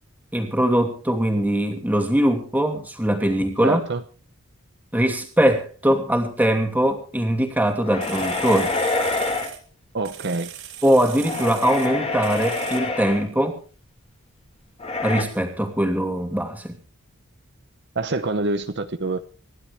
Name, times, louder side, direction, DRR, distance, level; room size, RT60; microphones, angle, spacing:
voice 1, 0.3-3.8 4.9-8.7 10.8-13.6 15.0-16.7, right 1 dB, 10° right, 4 dB, 2.7 m, -21 dB
voice 2, 3.6-4.0 9.9-10.5 17.9-19.2, right 3 dB, 50° right, 8 dB, 0.9 m, -26 dB
sound 1, 7.7-7.8 8.0-9.6 10.0-11.9 12.2-12.8, right 11 dB, 70° right, 3.8 m, -39 dB
sound 2, 7.8-9.5 11.0-13.2 14.8-15.2, left 3 dB, 25° left, 2.6 m, -26 dB
26.5 x 11.5 x 3.5 m, 0.38 s
head